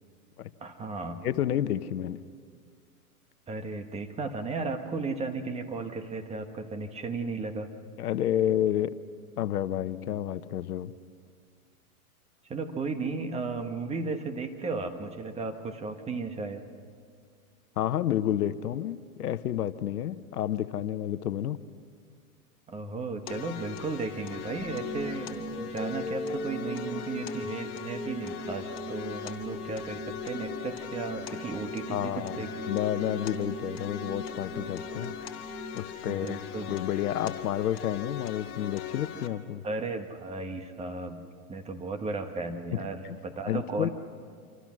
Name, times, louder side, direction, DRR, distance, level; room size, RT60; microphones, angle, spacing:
voice 1, 0.6-1.3 3.5-7.7 12.5-16.6 22.7-32.6 36.0-36.7 39.6-43.9, right 3 dB, 15° right, 6 dB, 1.3 m, -35 dB
voice 2, 1.2-2.2 8.0-8.9 9.4-10.9 17.8-21.6 31.9-35.1 35.7-36.4 36.7-39.6 42.7-42.8 43.0-43.2 43.5-43.9, left 11 dB, 80° left, 14 dB, 1.0 m, -30 dB
sound 1, 23.3-39.3, left 10 dB, 45° left, 2.0 m, -40 dB
sound 2, 24.6-36.6, equal, ahead, 1.0 m, -40 dB
27.0 x 25.0 x 6.2 m, 2.1 s
hypercardioid pair, 135°, 45 cm